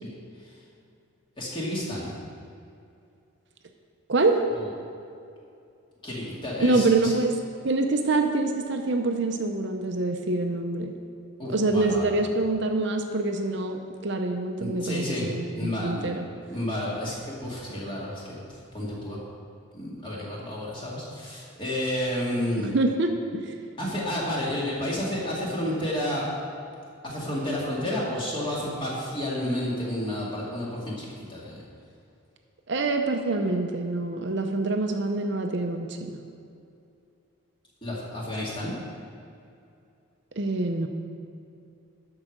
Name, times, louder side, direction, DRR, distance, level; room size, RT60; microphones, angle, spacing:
voice 1, 0.0-0.5 1.4-2.1 4.5-4.7 6.0-7.1 11.4-12.1 14.6-16.1 16.4-19.2 19.7-22.7 23.8-26.3 27.0-31.6 37.8-38.7, left 1 dB, 25° left, -5 dB, 2.1 m, -31 dB
voice 2, 4.1-4.4 6.6-7.3 7.6-11.0 11.5-16.3 22.6-23.5 32.7-36.2 40.4-40.9, right 2 dB, 55° right, 4 dB, 0.7 m, -25 dB
12.5 x 4.9 x 6.5 m, 2.5 s
head